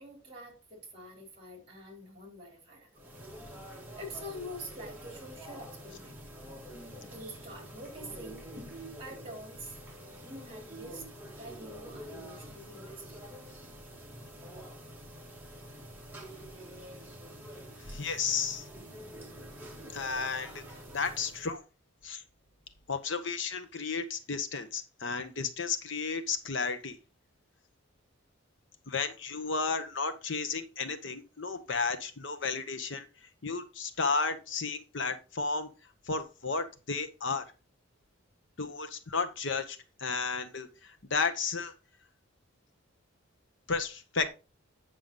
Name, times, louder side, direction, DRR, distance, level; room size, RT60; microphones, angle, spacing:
voice 1, 0.0-3.1 4.0-6.2 7.1-8.4 9.0-9.7 10.2-11.0 11.4-13.2, equal, 25° right, 3.6 m, -46 dB
sound 1, 2.9-21.6, right 1 dB, 10° right, 1.6 m, -47 dB
voice 2, 17.8-18.7 19.9-20.6 20.9-21.6 22.0-22.2 22.9-27.0 28.9-33.1 33.4-35.7 36.1-37.5 38.6-41.7 43.7-44.3, left 4 dB, 60° left, 0.9 m, -33 dB
8.7 x 6.7 x 3.8 m
head